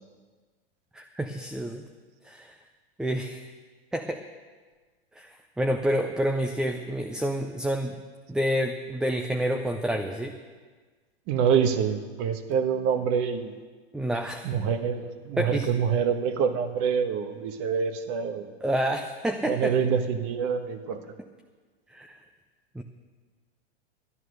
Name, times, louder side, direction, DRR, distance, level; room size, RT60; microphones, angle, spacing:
voice 1, 0.9-1.8 2.2-2.6 3.0-3.5 3.9-4.2 5.2-8.0 8.3-10.4 13.9-14.5 15.4-15.7 18.6-19.7 21.9-22.2 22.7-22.8, equal, ahead, 5 dB, 0.4 m, -28 dB
voice 2, 11.3-13.5 14.4-18.5 19.5-21.0, right 7 dB, 45° right, 8 dB, 1.3 m, -26 dB
12.5 x 9.1 x 6.5 m, 1.4 s
hypercardioid pair, 120°, 32 cm